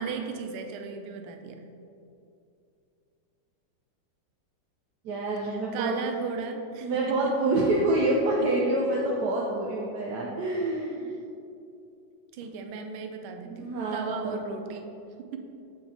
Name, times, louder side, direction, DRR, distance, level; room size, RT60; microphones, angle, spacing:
voice 1, 0.0-1.7 5.5-7.3 8.4-8.5 11.1-11.2 12.3-14.9 15.2-15.4, right 6 dB, 85° right, 5 dB, 1.5 m, -36 dB
voice 2, 5.0-5.9 6.8-11.1 12.4-12.5 13.4-14.4, right 2 dB, 65° right, -3 dB, 1.1 m, -27 dB
8.2 x 3.8 x 4.3 m, 2.6 s
omnidirectional pair, 2.2 m